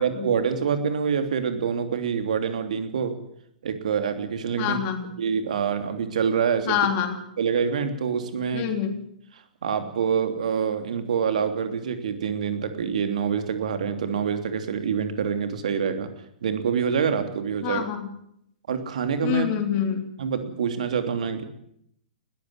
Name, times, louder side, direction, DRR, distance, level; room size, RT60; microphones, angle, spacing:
voice 1, 0.0-3.1 3.6-4.8 5.2-6.8 7.4-8.7 9.6-16.1 16.4-17.8 18.7-19.5 20.2-21.4, right 7 dB, 60° right, 7 dB, 3.1 m, -26 dB
voice 2, 4.6-5.1 6.7-7.2 8.5-9.0 17.6-18.1 19.2-20.1, left 9 dB, 35° left, 6 dB, 3.5 m, -26 dB
20.0 x 14.5 x 9.6 m, 0.75 s
figure-of-eight pair, 115°, 4 cm